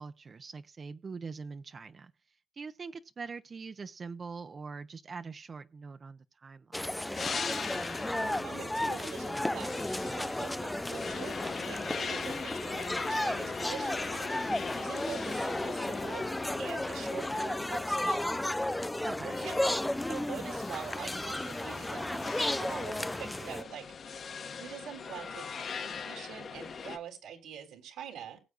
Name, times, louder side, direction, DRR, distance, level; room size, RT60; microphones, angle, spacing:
voice 1, 0.0-2.1 2.6-6.9 19.0-19.3, right 4 dB, 40° right, 0.7 m, -43 dB
sound 1, 6.7-23.6, left 1 dB, 10° left, 0.4 m, -34 dB
sound 2, 7.1-27.0, left 6 dB, 55° left, 1.6 m, -41 dB
voice 2, 8.2-11.4 11.6-14.5 14.7-16.3 16.6-18.3 19.2-19.8 20.1-22.2 22.6-24.2 24.6-28.4, right 8 dB, 90° right, 3.4 m, -45 dB
20.0 x 8.0 x 2.5 m
cardioid pair, 90°, 0 cm